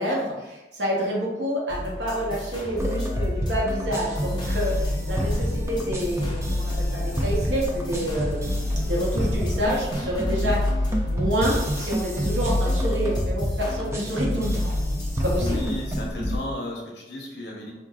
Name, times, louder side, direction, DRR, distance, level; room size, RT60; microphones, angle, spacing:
voice 1, 0.0-10.6 11.0-14.7 15.1-15.7, equal, 80° right, -3 dB, 1.0 m, -28 dB
sound 1, 1.7-16.1, left 1 dB, 25° left, 0.7 m, -36 dB
sound 2, 2.8-16.4, left 1 dB, 15° right, 0.4 m, -27 dB
voice 2, 15.4-17.7, left 1 dB, 65° left, -2 dB, 0.9 m, -34 dB
4.6 x 2.3 x 2.4 m, 1.1 s
head